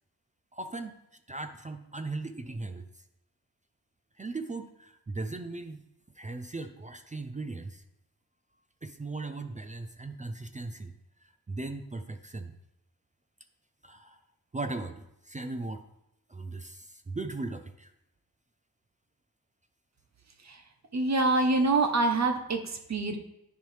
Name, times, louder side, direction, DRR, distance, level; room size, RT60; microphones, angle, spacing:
voice 1, 0.5-1.0 1.3-2.9 4.2-5.8 6.2-7.8 8.8-10.9 11.2-12.5 13.8-14.2 14.5-15.8 16.3-17.9, right 3 dB, 20° right, 8 dB, 0.4 m, -38 dB
voice 2, 20.9-23.2, right 3 dB, 50° right, 5 dB, 0.9 m, -26 dB
10.5 x 3.8 x 3.2 m, 0.84 s
cardioid pair, 60°, 36 cm